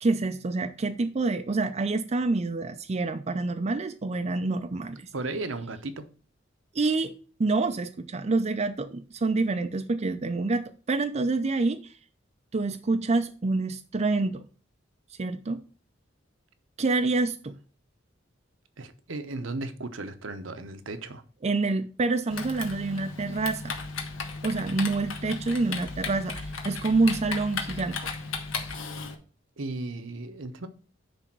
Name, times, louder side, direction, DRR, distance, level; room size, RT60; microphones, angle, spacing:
voice 1, 0.0-5.1 6.7-7.1 7.4-11.9 12.5-14.4 15.2-15.6 16.8-17.6 21.4-23.8 24.4-28.0, right 3 dB, 35° right, 0.5 m, -27 dB
voice 2, 5.1-6.1 18.8-21.2 29.6-30.7, right 2 dB, 70° right, 0.8 m, -35 dB
Typing, 22.3-29.1, left 4 dB, 90° left, 1.4 m, -35 dB
9.9 x 3.4 x 6.0 m
head